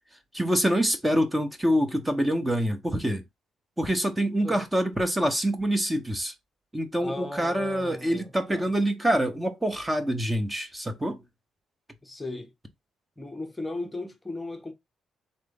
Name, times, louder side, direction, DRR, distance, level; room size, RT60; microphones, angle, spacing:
voice 1, 0.3-3.2 3.8-6.3 6.7-11.2, equal, 10° right, 0.9 m, -26 dB
voice 2, 7.0-8.7 12.0-12.5 13.2-14.7, left 2 dB, 10° left, 0.9 m, -36 dB
3.9 x 3.2 x 3.8 m
cardioid pair, 90°, 0 cm